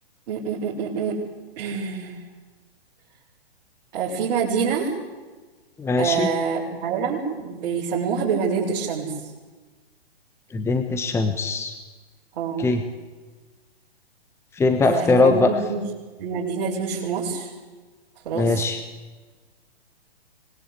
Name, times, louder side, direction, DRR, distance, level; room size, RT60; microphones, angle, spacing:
voice 1, 0.3-1.2 1.6-2.1 3.9-4.9 6.0-9.1 12.3-12.6 14.8-15.8 16.2-17.5 18.2-18.6, right 6 dB, 45° right, -5 dB, 6.6 m, -26 dB
voice 2, 5.8-6.3 10.5-11.7 12.6-12.8 14.5-15.5 18.3-18.8, left 3 dB, 10° left, 7 dB, 1.3 m, -21 dB
26.0 x 21.0 x 8.4 m, 1.3 s
hypercardioid pair, 130°, 31 cm